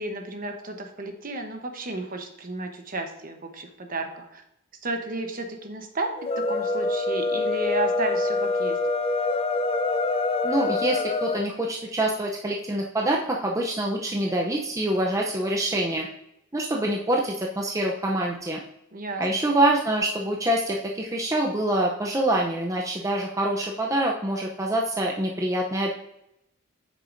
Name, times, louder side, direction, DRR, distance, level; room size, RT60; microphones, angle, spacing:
voice 1, 0.0-4.4 4.8-6.1 6.4-8.8 18.9-19.2, right 2 dB, 40° right, 5 dB, 1.0 m, -32 dB
sound 1, 6.2-11.5, left 3 dB, 25° left, 0.4 m, -25 dB
voice 2, 10.4-16.1 16.5-18.6 19.2-25.9, right 1 dB, 15° right, -1 dB, 0.6 m, -25 dB
8.4 x 6.6 x 2.6 m, 0.83 s
head